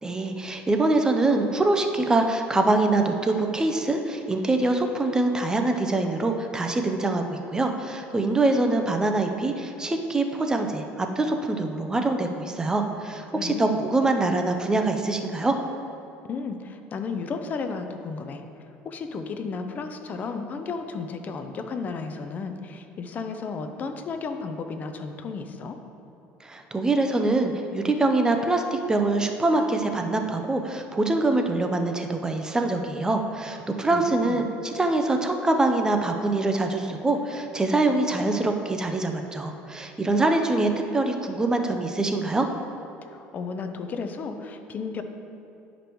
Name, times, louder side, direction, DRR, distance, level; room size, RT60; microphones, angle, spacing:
voice 1, 0.0-15.6 26.4-42.5, right 2 dB, 15° right, 5 dB, 0.6 m, -24 dB
voice 2, 13.3-13.8 16.2-18.4 18.8-25.8 33.8-34.4 43.1-45.0, left 4 dB, 40° left, 7 dB, 0.6 m, -33 dB
10.5 x 5.1 x 3.1 m, 2.8 s
supercardioid pair, 105°, 4 cm